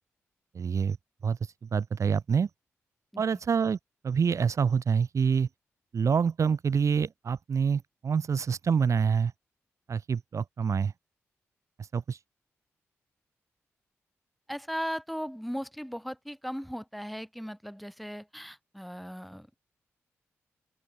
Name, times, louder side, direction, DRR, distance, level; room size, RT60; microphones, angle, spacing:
voice 1, 0.5-1.0 1.2-2.5 3.2-3.8 4.0-5.5 5.9-9.3 9.9-10.9 11.8-12.2, right 6 dB, 60° right, 1.3 m, -26 dB
voice 2, 14.5-19.5, equal, ahead, 5.2 m, -37 dB
open air
supercardioid pair, 40°, 6 cm